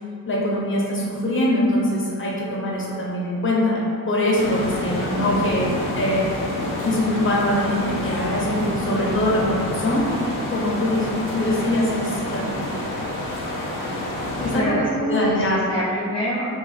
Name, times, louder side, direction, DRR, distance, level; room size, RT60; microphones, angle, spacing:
voice 1, 0.3-3.8 4.1-5.6 6.0-6.2 6.8-10.1 10.5-12.6 14.4-14.7 15.1-15.6, left 1 dB, 35° left, -5 dB, 0.8 m, -23 dB
sound 1, 4.4-14.6, left 1 dB, 60° left, 0.7 m, -28 dB
voice 2, 14.4-16.5, equal, 15° left, -8 dB, 0.4 m, -26 dB
2.8 x 2.2 x 4.1 m, 2.4 s
cardioid pair, 105°, 37 cm